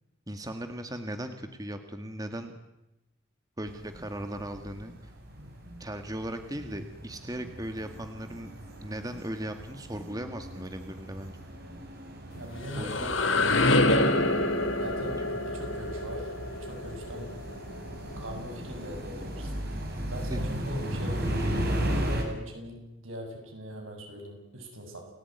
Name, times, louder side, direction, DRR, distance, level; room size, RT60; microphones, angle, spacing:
voice 1, 0.3-2.5 3.6-5.1 5.8-8.5 8.8-11.4 12.8-13.1 20.3-20.4 21.4-21.5, right 1 dB, 15° right, 7 dB, 1.7 m, -37 dB
sound 1, 3.7-22.2, equal, 45° right, 6.0 m, -36 dB
sound 2, 12.4-18.1, left 2 dB, 65° left, 2.7 m, -27 dB
voice 2, 12.4-13.4 14.8-16.3 16.6-17.3 18.2-21.4 22.1-25.1, equal, 80° right, 3 dB, 7.8 m, -41 dB
29.5 x 19.0 x 9.5 m, 0.95 s
head